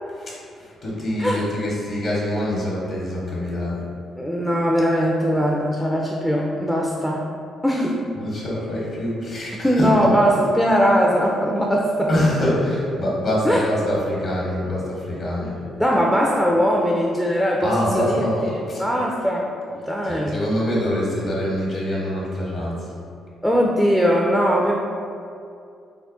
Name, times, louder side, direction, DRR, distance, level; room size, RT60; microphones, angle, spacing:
voice 1, 0.8-3.8 8.2-9.9 12.1-15.6 17.6-18.8 20.1-22.9, left 1 dB, 55° left, -5 dB, 0.9 m, -24 dB
voice 2, 4.2-7.2 7.6-8.0 9.6-12.1 13.4-13.7 15.7-19.5 19.9-20.4 23.4-24.7, equal, ahead, -2 dB, 0.4 m, -20 dB
3.5 x 2.1 x 3.7 m, 2.4 s
cardioid pair, 90°, 0 cm